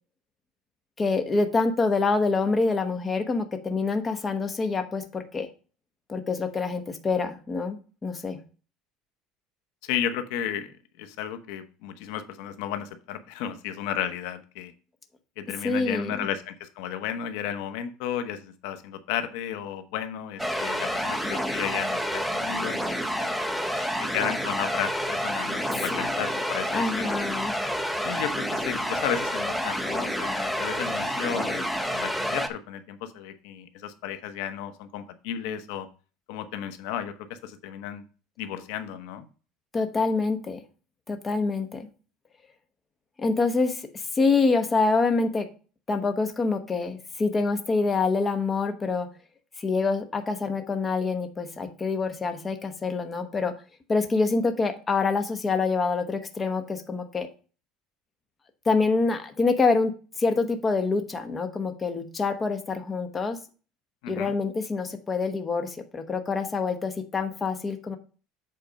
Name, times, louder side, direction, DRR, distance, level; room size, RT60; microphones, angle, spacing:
voice 1, 1.0-5.5 6.1-8.4 15.6-16.1 25.9-26.1 26.7-27.5 39.7-40.6 41.1-41.9 43.2-45.5 45.9-49.1 49.6-53.5 53.9-57.3 58.7-63.4 64.1-68.0, left 4 dB, 20° left, 7 dB, 1.0 m, -26 dB
voice 2, 9.8-10.7 11.0-14.7 15.4-23.3 24.0-27.2 28.0-35.9 36.3-37.1 37.4-38.0 38.4-39.3 64.0-64.3, left 9 dB, 75° left, 9 dB, 0.9 m, -33 dB
sound 1, 20.4-32.5, equal, ahead, 0.7 m, -29 dB
7.8 x 4.2 x 5.2 m, 0.36 s
cardioid pair, 145°, 0 cm